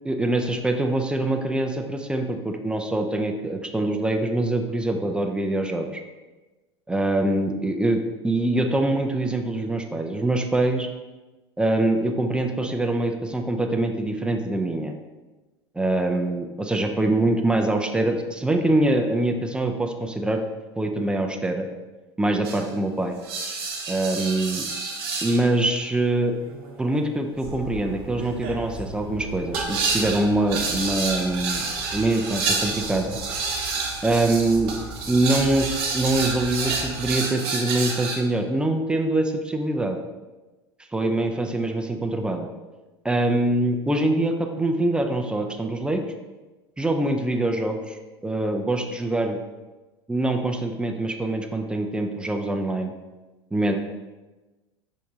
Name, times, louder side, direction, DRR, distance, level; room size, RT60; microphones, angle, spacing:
voice 1, 0.0-6.0 6.9-10.9 11.6-14.9 15.8-20.4 20.8-21.7 22.2-23.2 23.9-24.7 25.2-26.4 26.8-31.7 31.9-33.2 34.0-34.7 35.1-40.0 40.9-42.5 43.0-46.0 46.8-49.4 50.1-52.9 53.5-53.8, right 2 dB, 5° right, 4 dB, 0.4 m, -24 dB
sound 1, 22.4-22.8 23.2-25.5 26.4-38.2, right 4 dB, 55° right, 0.8 m, -29 dB
sound 2, 27.4-37.2, right 1 dB, 35° right, 1.1 m, -40 dB
5.4 x 3.6 x 2.7 m, 1.2 s
figure-of-eight pair, 75°, 14 cm